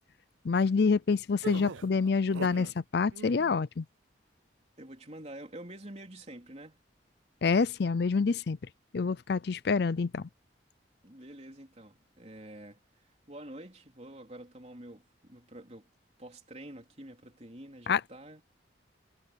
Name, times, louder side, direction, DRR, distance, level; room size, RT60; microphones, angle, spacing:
voice 1, 0.4-3.8 7.4-8.6 8.9-10.2 17.9-18.0, left 5 dB, 55° left, 0.4 m, -27 dB
sound 1, 1.4-2.7 3.1-3.6, right 5 dB, 80° right, 0.6 m, -41 dB
voice 2, 4.8-6.8 11.0-15.9 16.2-18.4, right 1 dB, 35° right, 3.8 m, -47 dB
head